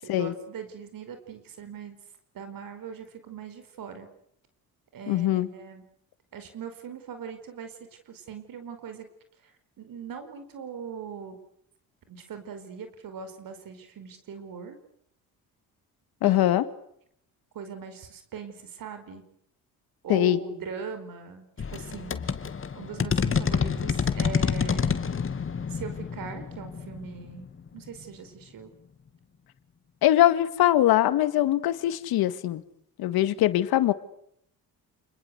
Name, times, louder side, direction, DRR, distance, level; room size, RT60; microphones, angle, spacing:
voice 1, 0.0-2.0 2.3-4.1 4.9-5.8 6.3-9.1 9.4-11.4 12.1-14.8 16.2-16.4 17.5-19.2 20.0-22.3 22.7-24.9 25.7-27.5 27.7-28.7, right 6 dB, 65° right, 8 dB, 4.9 m, -40 dB
voice 2, 5.1-5.5 16.2-16.6 20.1-20.4 30.0-32.6 33.0-33.9, left 13 dB, 80° left, 12 dB, 2.0 m, -22 dB
sound 1, 21.6-28.0, left 6 dB, 35° left, 2.3 m, -28 dB
29.5 x 21.5 x 8.1 m, 0.70 s
cardioid pair, 95°, 36 cm